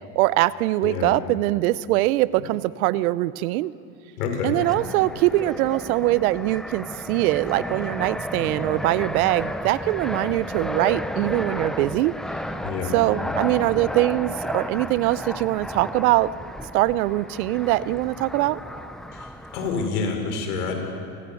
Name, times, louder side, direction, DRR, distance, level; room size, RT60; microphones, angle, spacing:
voice 1, 0.1-3.7 4.4-12.1 12.9-16.3 16.7-18.6, right 17 dB, 65° right, 18 dB, 0.8 m, -22 dB
voice 2, 0.8-1.1 4.2-4.6 12.6-13.0 19.1-20.8, left 5 dB, 75° left, 3 dB, 5.7 m, -28 dB
Fixed-wing aircraft airplane, 4.6-19.9, equal, ahead, 0.7 m, -33 dB
28.5 x 19.5 x 7.2 m, 2.5 s
supercardioid pair, 115°, 46 cm